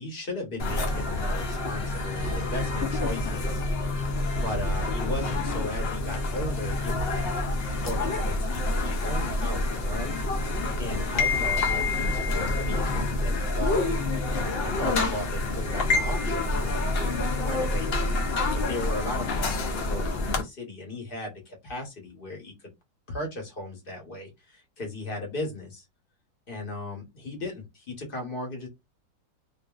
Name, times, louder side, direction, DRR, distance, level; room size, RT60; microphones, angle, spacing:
voice 1, 0.0-3.6 4.4-7.2 7.8-10.1 10.8-13.8 14.3-22.5 23.1-25.8 26.5-28.7, left 2 dB, 40° left, 0.9 m, -36 dB
sound 1, 0.6-20.4, left 2 dB, 85° left, 0.5 m, -27 dB
2.7 x 2.5 x 2.3 m
omnidirectional pair, 1.9 m